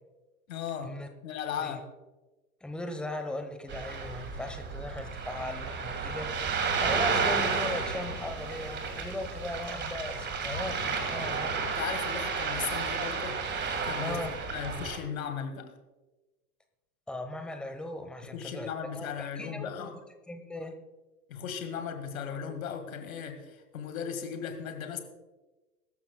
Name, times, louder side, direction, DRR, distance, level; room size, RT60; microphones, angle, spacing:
voice 1, 0.5-1.0 1.2-1.8 11.6-13.4 13.8-14.2 14.5-15.7 18.3-19.9 21.3-25.0, left 7 dB, 60° left, 8 dB, 1.9 m, -36 dB
voice 2, 2.6-6.3 6.8-11.6 14.0-14.4 17.1-19.9 20.3-20.7, left 1 dB, ahead, 7 dB, 1.0 m, -38 dB
Ocean, 3.7-15.0, right 5 dB, 25° right, 1.9 m, -32 dB
sound 1, 6.0-11.7, left 4 dB, 85° left, 1.7 m, -45 dB
22.0 x 13.0 x 2.3 m, 1.2 s
figure-of-eight pair, 90°, 45 cm